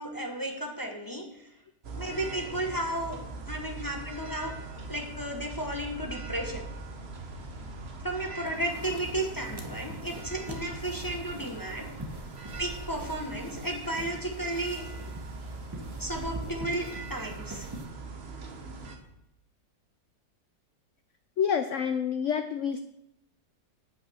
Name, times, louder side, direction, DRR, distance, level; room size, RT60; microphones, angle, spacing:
voice 1, 0.0-1.5 1.9-3.2 3.5-4.5 4.9-6.7 8.0-11.9 12.6-14.9 16.0-17.7, right 1 dB, 15° left, 2 dB, 0.7 m, -33 dB
sound 1, 1.8-19.0, right 3 dB, 40° right, 1.1 m, -41 dB
sound 2, 8.5-17.9, right 1 dB, 15° right, 0.9 m, -44 dB
voice 2, 21.4-22.8, left 7 dB, 85° left, 9 dB, 0.6 m, -28 dB
8.2 x 6.0 x 6.2 m, 0.82 s
omnidirectional pair, 1.9 m